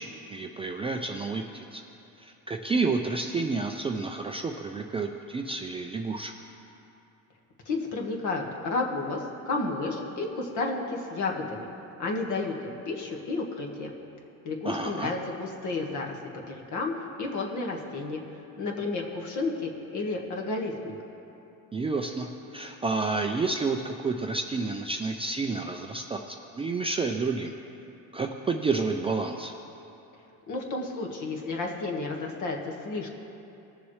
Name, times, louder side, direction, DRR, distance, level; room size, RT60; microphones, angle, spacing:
voice 1, 0.0-1.8 2.2-6.3 14.6-15.1 21.7-27.5 28.1-29.5, right 3 dB, 15° right, 3 dB, 0.4 m, -30 dB
voice 2, 7.6-11.7 12.0-13.9 14.4-18.2 18.6-20.9 30.5-33.1, left 3 dB, 55° left, 1 dB, 1.6 m, -32 dB
19.5 x 7.1 x 3.2 m, 2.8 s
cardioid pair, 130°, 37 cm